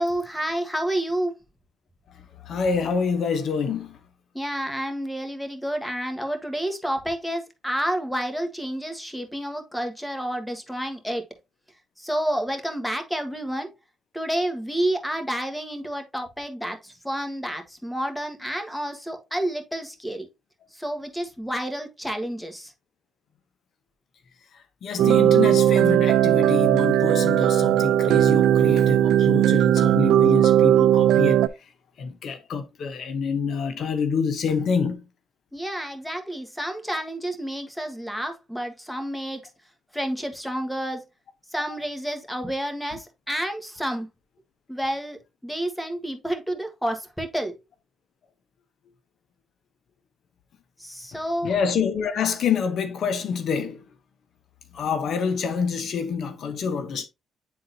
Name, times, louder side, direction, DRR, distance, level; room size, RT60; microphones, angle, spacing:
voice 1, 0.0-1.4 4.3-11.3 12.0-13.7 14.1-20.3 20.7-22.7 35.5-39.4 39.9-41.0 41.5-44.1 44.7-47.6 50.8-51.5, right 1 dB, 5° left, 1.5 m, -29 dB
voice 2, 2.4-4.0 24.8-31.4 32.0-35.0 51.4-53.8 54.7-57.1, left 6 dB, 65° left, 0.9 m, -27 dB
sound 1, 25.0-31.5, right 11 dB, 85° right, 0.4 m, -18 dB
9.6 x 3.9 x 2.7 m
cardioid pair, 90°, 0 cm